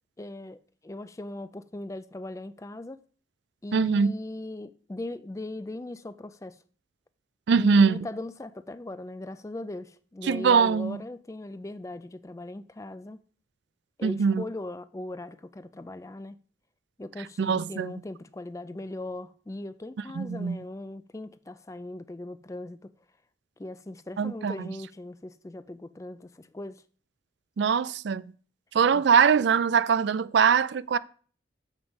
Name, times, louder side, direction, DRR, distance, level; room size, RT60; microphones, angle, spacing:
voice 1, 0.2-3.0 3.6-6.6 7.6-13.2 14.0-16.4 17.0-22.9 23.6-26.8 28.9-29.0, left 2 dB, 15° left, 0.3 m, -39 dB
voice 2, 3.7-4.1 7.5-8.1 10.2-11.0 14.0-14.4 17.4-17.9 20.2-20.6 24.2-24.7 27.6-28.2 28.7-31.0, right 6 dB, 65° right, 0.4 m, -22 dB
7.2 x 6.0 x 5.2 m
head